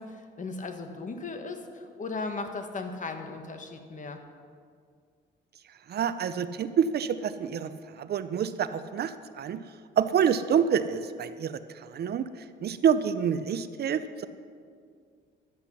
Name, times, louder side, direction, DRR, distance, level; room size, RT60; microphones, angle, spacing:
voice 1, 0.0-4.2, left 3 dB, 40° left, 6 dB, 1.3 m, -37 dB
voice 2, 5.9-9.6 10.0-14.3, right 8 dB, 55° right, 12 dB, 0.5 m, -27 dB
11.5 x 8.1 x 5.7 m, 2.1 s
cardioid pair, 90°, 20 cm